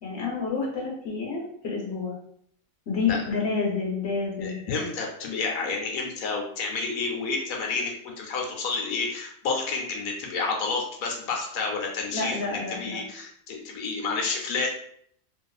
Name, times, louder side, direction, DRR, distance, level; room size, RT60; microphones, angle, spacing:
voice 1, 0.0-2.1 2.9-4.6 12.1-13.0, left 4 dB, 55° left, -3 dB, 1.0 m, -29 dB
voice 2, 4.4-14.8, left 4 dB, 90° left, 0 dB, 1.1 m, -30 dB
2.7 x 2.4 x 2.3 m, 0.65 s
omnidirectional pair, 1.4 m